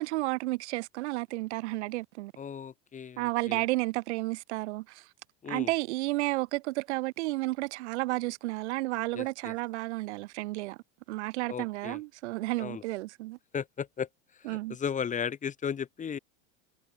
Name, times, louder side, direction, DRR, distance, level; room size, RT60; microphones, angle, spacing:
voice 1, 0.0-2.3 3.2-5.0 5.5-10.8 11.1-13.4 14.5-14.8, right 20 dB, 75° right, 1.8 m, -32 dB
voice 2, 2.4-3.6 5.4-5.7 9.1-9.5 11.5-12.0 12.6-12.8 13.5-16.2, left 7 dB, 20° left, 5.9 m, -36 dB
supercardioid pair, 145°, 34 cm